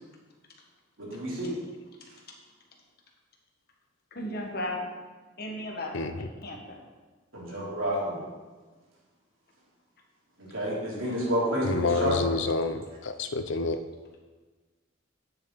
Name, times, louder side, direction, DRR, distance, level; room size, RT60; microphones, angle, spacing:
voice 1, 1.0-1.6 7.3-8.2 10.4-12.1, equal, 90° right, -5 dB, 3.2 m, -29 dB
voice 2, 4.1-4.8 5.4-6.8, left 1 dB, 50° left, 0 dB, 1.5 m, -36 dB
voice 3, 5.9-6.3 11.6-13.8, left 3 dB, 70° left, 9 dB, 0.6 m, -28 dB
10.0 x 7.0 x 4.0 m, 1.3 s
head